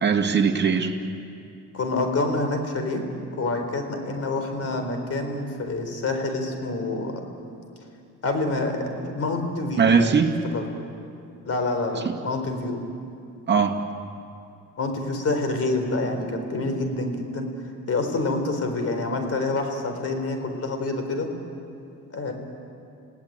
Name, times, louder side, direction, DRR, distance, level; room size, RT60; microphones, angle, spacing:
voice 1, 0.0-0.9 9.8-10.3 12.0-12.1 13.5-13.8, right 6 dB, 35° right, 3 dB, 2.3 m, -20 dB
voice 2, 1.7-3.0 3.3-7.3 8.2-10.1 10.5-10.6 11.4-12.8 14.8-17.5 17.9-21.3 22.1-22.3, left 2 dB, 50° left, 6 dB, 4.2 m, -27 dB
29.0 x 17.5 x 9.0 m, 2.5 s
cardioid pair, 90°, 30 cm